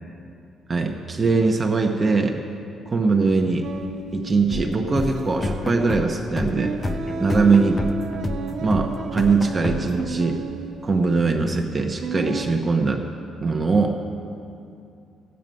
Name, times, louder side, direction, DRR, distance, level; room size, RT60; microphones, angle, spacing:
voice 1, 0.7-2.4 2.9-3.7 4.1-6.8 7.2-7.7 8.6-10.4 10.8-13.0 13.4-13.9, right 4 dB, 30° right, 3 dB, 0.9 m, -21 dB
sound 1, 3.6-12.5, right 4 dB, 80° right, 1.5 m, -33 dB
sound 2, 4.5-10.1, left 2 dB, 30° left, 0.8 m, -29 dB
14.5 x 9.1 x 5.3 m, 2.6 s
cardioid pair, 90°, 0 cm